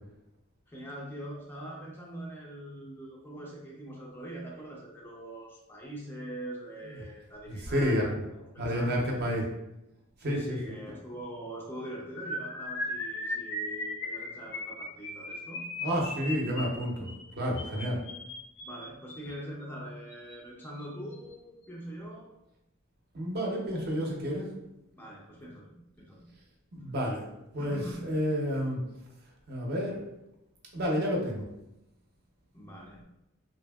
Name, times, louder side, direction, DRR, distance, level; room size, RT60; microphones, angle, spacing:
voice 1, 0.7-8.0 8.4-9.3 10.2-15.6 17.6-17.7 18.6-22.3 24.9-26.2 27.6-28.0 32.5-33.0, right 1 dB, 10° left, -3 dB, 0.4 m, -43 dB
voice 2, 7.5-8.2 8.6-9.4 10.2-10.9 15.8-18.0 23.1-24.5 26.7-27.3 27.5-28.8 29.5-30.0 30.7-31.5, equal, 50° right, -1 dB, 0.6 m, -30 dB
sound 1, 12.2-19.3 20.1-20.3 20.6-20.8 21.1-21.3, left 1 dB, 60° left, 0.6 m, -37 dB
2.7 x 2.6 x 2.2 m, 0.89 s
head